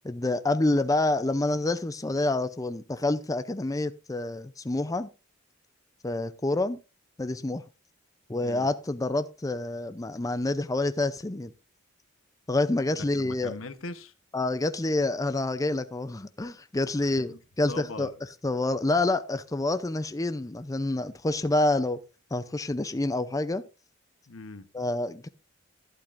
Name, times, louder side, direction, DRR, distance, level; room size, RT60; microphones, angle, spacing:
voice 1, 0.0-5.1 6.0-6.8 7.2-7.6 8.3-11.5 12.5-13.5 14.3-18.1 18.4-22.0 22.3-23.6 24.7-25.3, left 2 dB, 15° left, 0.5 m, -27 dB
voice 2, 8.4-8.7 13.1-14.1 17.0-17.4 17.7-18.1 24.3-24.7, left 3 dB, 90° left, 1.0 m, -40 dB
12.0 x 11.5 x 2.5 m
head